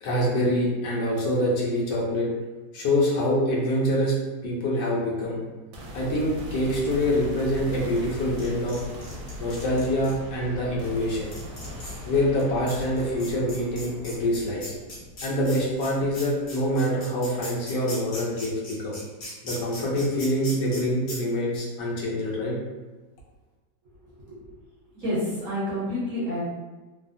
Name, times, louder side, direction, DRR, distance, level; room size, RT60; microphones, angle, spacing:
voice 1, 0.0-2.3 2.7-4.1 4.4-5.4 5.9-8.8 9.4-11.3 12.1-14.7 15.2-19.0 19.4-22.6, left 1 dB, 75° left, -4 dB, 1.3 m, -25 dB
sound 1, 5.7-17.1, equal, 85° right, 1.3 m, -40 dB
sound 2, 8.0-10.1 10.8-10.9 11.3-12.0 12.4-12.5 12.7-20.8 21.1-21.2, left 1 dB, 50° left, 1.2 m, -39 dB
voice 2, 24.1-24.4 24.9-26.4, left 1 dB, 55° right, -8 dB, 1.2 m, -29 dB
3.3 x 2.1 x 2.6 m, 1.2 s
omnidirectional pair, 2.0 m